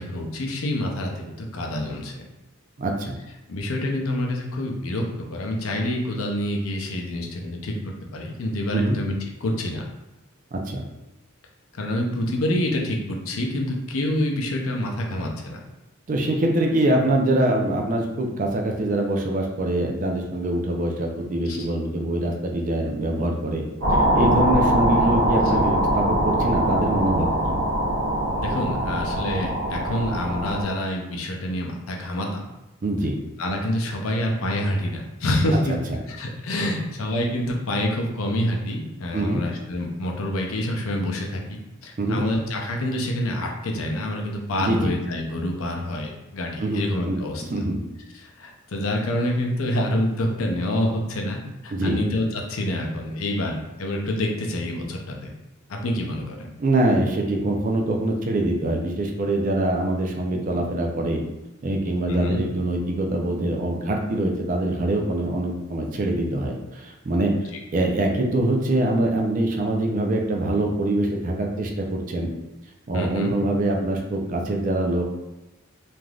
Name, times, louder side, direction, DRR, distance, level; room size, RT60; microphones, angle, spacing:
voice 1, 0.0-2.1 3.5-5.0 5.3-7.7 8.1-9.1 9.4-9.8 11.7-15.6 21.5-21.7 28.4-32.4 33.4-35.7 36.1-47.4 48.2-55.3 55.7-56.5 62.0-62.4 67.3-67.4 72.9-73.3, left 1 dB, 80° left, 1 dB, 0.5 m, -27 dB
voice 2, 2.8-3.1 8.7-9.0 10.5-10.8 16.1-23.6 23.9-27.5 32.8-33.1 35.7-35.8 39.1-39.4 42.0-42.2 44.6-44.9 46.6-47.2 47.5-47.8 51.7-52.0 56.6-61.2 61.6-67.3 67.7-72.3 72.9-75.0, right 1 dB, 40° right, 1 dB, 0.4 m, -24 dB
sound 1, 23.8-30.6, right 1 dB, 60° right, 0.9 m, -22 dB
3.3 x 2.5 x 2.3 m, 0.98 s
head